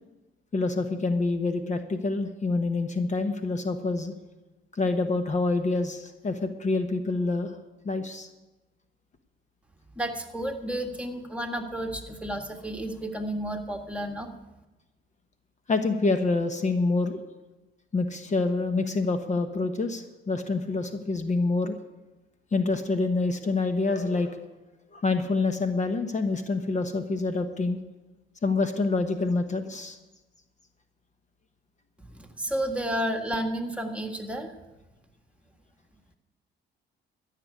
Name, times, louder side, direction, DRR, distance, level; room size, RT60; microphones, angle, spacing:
voice 1, 0.5-4.1 4.7-7.5 7.8-8.3 15.7-17.2 17.9-21.8 22.5-24.4 24.9-27.8 28.4-30.0, left 3 dB, 35° left, 8 dB, 1.0 m, -27 dB
voice 2, 9.9-14.3 32.0-34.5, right 1 dB, 5° right, 4 dB, 1.7 m, -31 dB
13.5 x 6.8 x 9.5 m, 1.1 s
cardioid pair, 90°, 20 cm